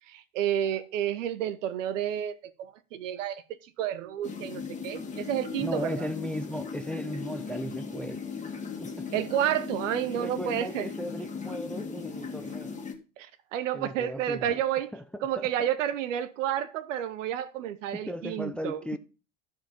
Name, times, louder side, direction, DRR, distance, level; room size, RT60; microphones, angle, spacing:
voice 1, 0.1-6.1 9.1-10.9 13.2-14.9 15.2-18.8, right 10 dB, 65° right, 1.0 m, -30 dB
sound 1, 4.2-12.9, left 5 dB, 20° left, 2.0 m, -38 dB
voice 2, 5.6-8.2 8.8-9.1 10.1-12.7 13.7-14.6 14.9-15.7 17.9-19.0, equal, 5° left, 0.5 m, -36 dB
12.5 x 4.8 x 5.4 m
figure-of-eight pair, 70°, 40 cm